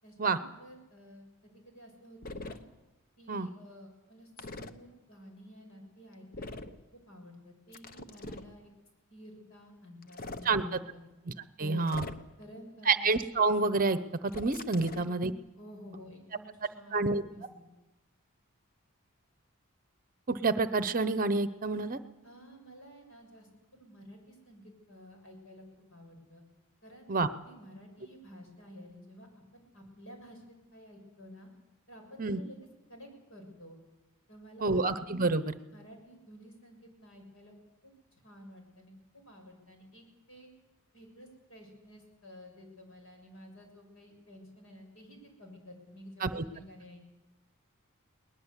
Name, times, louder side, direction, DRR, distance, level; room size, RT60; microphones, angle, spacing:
voice 1, 0.0-2.6 3.2-6.6 7.1-8.7 9.1-11.0 11.6-11.9 12.4-13.0 14.8-15.1 15.6-17.6 22.2-25.6 25.9-26.4 26.8-29.3 29.5-31.5 31.9-32.6 32.9-33.8 34.3-35.0 35.7-37.5 37.8-38.9 39.2-40.5 40.9-47.0, equal, 65° left, 3 dB, 6.8 m, -51 dB
sound 1, 2.2-2.6 4.4-4.7 6.3-6.8 7.7-8.5 10.0-10.5 11.8-12.4 14.3-15.1, left 2 dB, 40° left, 1.1 m, -42 dB
voice 2, 11.6-12.0 12.9-15.3 16.9-17.2 20.3-22.0 27.1-27.3 32.2-32.4 34.6-35.5 46.2-46.4, right 3 dB, 40° right, 13 dB, 0.8 m, -28 dB
21.5 x 19.5 x 8.2 m, 1.0 s
head